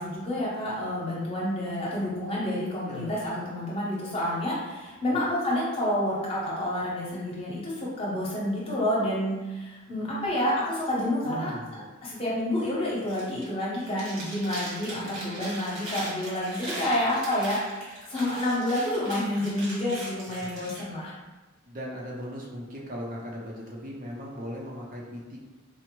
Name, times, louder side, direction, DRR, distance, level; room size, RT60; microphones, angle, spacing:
voice 1, 0.0-11.5 12.0-21.1, left 1 dB, 25° left, -6 dB, 0.8 m, -29 dB
voice 2, 2.8-3.2 5.1-5.3 11.2-11.9 16.0-16.1 20.3-20.7 21.7-25.4, equal, 40° right, -3 dB, 0.5 m, -38 dB
Chewing mastication, 13.0-13.5 13.8-20.8, right 1 dB, 75° right, 1.4 m, -39 dB
4.4 x 2.0 x 2.9 m, 1.2 s
head